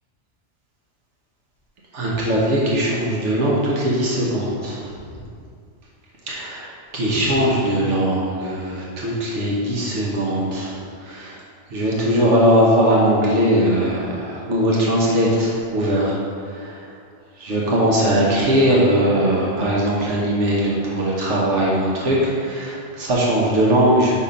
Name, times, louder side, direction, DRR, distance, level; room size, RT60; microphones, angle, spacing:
voice 1, 1.9-4.8 6.3-6.7 6.9-10.8 11.0-11.4 11.7-16.1 16.5-16.8 17.4-24.1, equal, 90° right, -4 dB, 1.4 m, -20 dB
5.5 x 4.4 x 5.0 m, 2.3 s
omnidirectional pair, 1.2 m